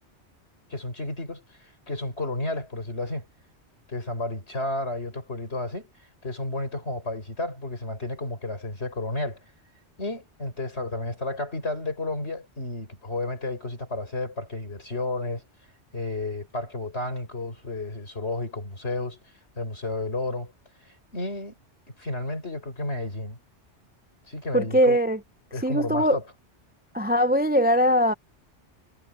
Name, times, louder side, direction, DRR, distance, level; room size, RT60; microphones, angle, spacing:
voice 1, 0.7-3.2 3.9-5.9 6.2-9.4 10.0-15.4 15.9-19.2 19.6-20.5 21.1-21.5 22.0-23.4 24.3-25.0 25.5-26.2, left 2 dB, 70° left, 5.8 m, -32 dB
voice 2, 24.5-25.2 25.6-26.2 26.9-28.1, equal, 10° right, 0.4 m, -21 dB
omnidirectional pair, 1.2 m